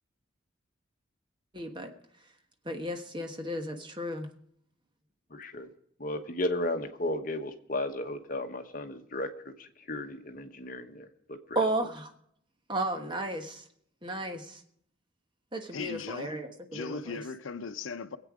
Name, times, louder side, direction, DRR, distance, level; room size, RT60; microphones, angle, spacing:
voice 1, 1.5-1.9 2.6-4.3 11.5-12.1 12.7-13.6 14.0-14.6 15.5-17.2, right 1 dB, 25° right, 1.3 m, -33 dB
voice 2, 5.3-5.7 6.0-11.7, left 1 dB, 45° left, 1.1 m, -35 dB
voice 3, 15.7-16.4 16.7-18.2, left 4 dB, 80° left, 0.7 m, -38 dB
22.5 x 8.3 x 4.9 m
head